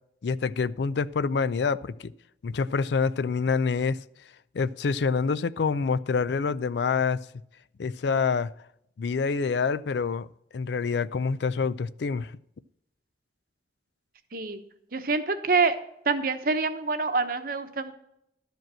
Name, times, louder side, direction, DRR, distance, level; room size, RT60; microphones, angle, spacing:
voice 1, 0.2-2.1 2.4-4.0 4.5-7.2 7.8-8.5 9.0-10.3 10.5-12.3, left 5 dB, 70° left, 0.4 m, -26 dB
voice 2, 14.9-15.8 16.0-17.9, right 4 dB, 55° right, 1.0 m, -26 dB
12.5 x 5.2 x 7.5 m
head